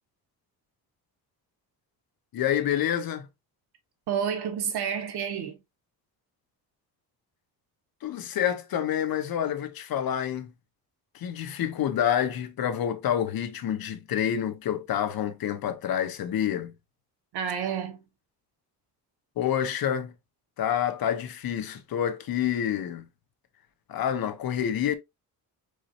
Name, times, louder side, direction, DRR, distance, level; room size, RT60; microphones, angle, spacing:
voice 1, 2.3-3.3 8.0-10.5 11.1-16.7 19.4-20.1 20.6-23.0 23.9-24.9, left 10 dB, 65° left, 1.0 m, -28 dB
voice 2, 4.1-5.6 17.3-18.0, right 7 dB, 80° right, 1.5 m, -30 dB
4.8 x 4.4 x 2.5 m
cardioid pair, 135°, 39 cm